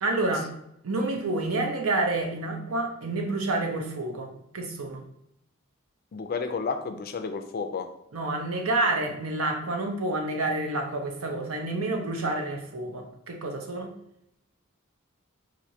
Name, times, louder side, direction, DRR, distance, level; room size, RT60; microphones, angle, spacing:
voice 1, 0.0-0.5 0.8-5.0 8.1-13.9, right 2 dB, 85° right, 3 dB, 0.7 m, -29 dB
voice 2, 6.1-7.9, left 5 dB, 45° left, 7 dB, 0.4 m, -31 dB
4.3 x 2.6 x 2.7 m, 0.77 s
head